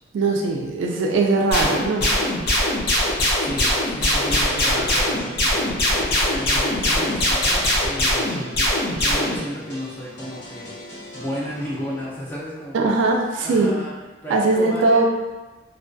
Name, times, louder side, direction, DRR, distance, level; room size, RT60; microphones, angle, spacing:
voice 1, 0.1-2.1 12.7-13.7 14.3-15.1, right 3 dB, 90° right, 1 dB, 0.3 m, -20 dB
sound 1, 1.5-9.4, left 1 dB, 55° left, 0.6 m, -21 dB
voice 2, 3.4-5.9 6.3-8.7 9.0-10.7 11.1-12.9 13.4-13.9 14.2-15.1, equal, 10° left, -7 dB, 0.4 m, -33 dB
sound 2, 4.5-12.1, left 1 dB, 80° left, 1.2 m, -40 dB
2.2 x 2.2 x 2.5 m, 1.2 s
head